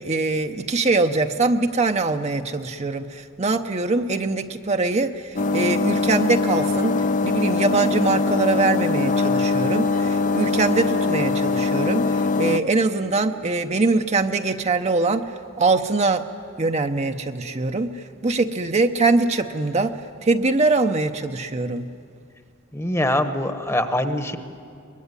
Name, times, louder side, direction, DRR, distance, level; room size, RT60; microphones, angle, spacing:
voice 1, 0.0-7.0 7.2-15.2 15.6-16.2 16.6-19.9 20.2-21.9, right 3 dB, 35° right, 6 dB, 0.7 m, -22 dB
sound 1, 5.4-12.6, left 3 dB, 40° left, 0.6 m, -22 dB
voice 2, 22.7-24.4, left 1 dB, 15° left, 8 dB, 1.1 m, -23 dB
23.5 x 21.0 x 9.7 m, 2.4 s
head